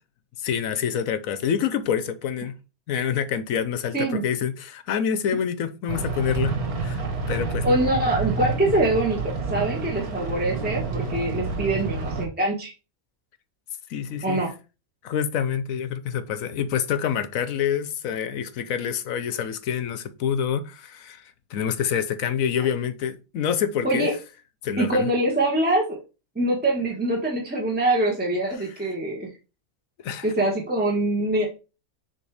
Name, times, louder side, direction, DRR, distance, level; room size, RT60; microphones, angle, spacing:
voice 1, 0.4-2.5 2.9-7.0 7.3-7.8 13.9-14.4 15.0-24.1 24.6-25.1 30.0-30.3, left 8 dB, 70° left, 1.1 m, -27 dB
sound 1, 5.9-12.3, right 4 dB, 75° right, 1.6 m, -29 dB
voice 2, 7.6-12.7 14.2-14.5 23.8-24.1 24.8-26.0 26.3-29.3 30.2-31.5, right 1 dB, 5° right, 1.2 m, -24 dB
6.9 x 3.2 x 4.8 m
omnidirectional pair, 1.6 m